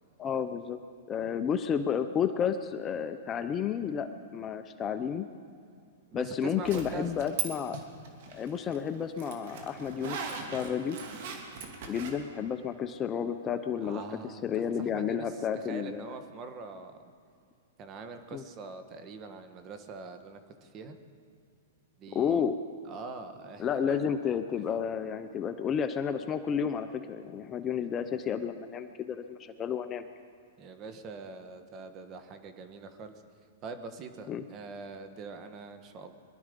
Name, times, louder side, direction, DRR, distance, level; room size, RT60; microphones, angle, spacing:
voice 1, 0.2-0.8 1.1-5.2 6.1-7.8 8.3-11.0 11.9-14.0 14.4-16.2 18.3-18.4 22.1-22.6 23.6-30.1 34.3-34.4, left 7 dB, 25° left, 9 dB, 0.6 m, -31 dB
voice 2, 6.1-7.3 13.8-17.0 17.8-21.0 22.0-22.4 22.8-24.0 28.4-28.5 30.6-33.1 33.6-36.1, right 4 dB, 30° right, 8 dB, 1.4 m, -44 dB
Zipper (clothing), 6.6-7.5 7.7-12.1, right 6 dB, 60° right, 2.5 m, -38 dB
22.5 x 12.0 x 5.3 m, 2.4 s
hypercardioid pair, 135°, 0 cm